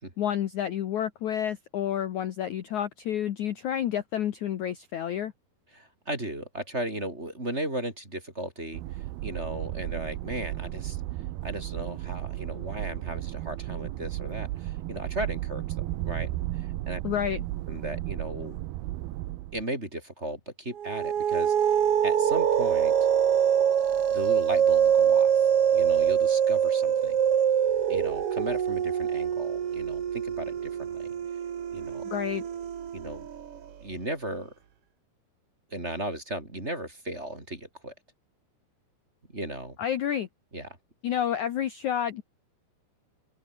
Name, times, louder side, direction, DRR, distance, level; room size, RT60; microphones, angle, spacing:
voice 1, 0.2-5.3 17.0-17.4 32.1-32.4 39.8-40.3 41.0-42.2, left 10 dB, 60° left, 2.2 m, -29 dB
voice 2, 5.7-11.0 11.4-17.0 17.7-18.6 19.5-21.8 22.0-22.9 24.1-25.3 25.7-27.2 27.9-31.1 31.7-32.0 32.9-33.3 33.8-34.5 35.7-37.9 39.3-39.8 40.5-40.7, right 1 dB, 15° right, 4.2 m, -36 dB
sound 1, 8.7-19.6, right 16 dB, 80° right, 2.8 m, -34 dB
sound 2, 20.8-33.6, right 8 dB, 50° right, 2.0 m, -24 dB
omnidirectional pair, 4.6 m